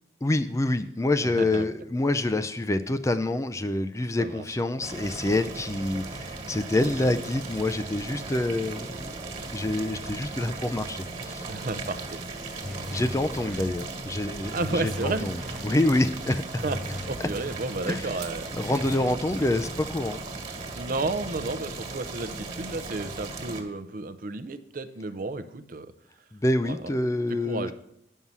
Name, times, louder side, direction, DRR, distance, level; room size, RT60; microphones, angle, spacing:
voice 1, 0.2-9.2 9.5-11.5 12.7-16.6 17.9-18.1 18.6-20.2 26.3-27.7, left 1 dB, 15° left, 11 dB, 0.4 m, -27 dB
voice 2, 1.2-1.7 4.2-4.6 11.5-12.2 14.5-15.3 16.6-16.8 17.0-18.7 20.7-25.9 26.7-26.9 27.4-27.7, right 2 dB, 50° right, 12 dB, 0.6 m, -32 dB
Boiling, 4.8-23.6, right 3 dB, 35° right, 1.7 m, -37 dB
sound 1, 12.6-13.8 14.6-15.8 16.6-17.8 18.6-19.8, left 1 dB, ahead, 0.8 m, -39 dB
9.4 x 5.5 x 7.3 m, 0.74 s
head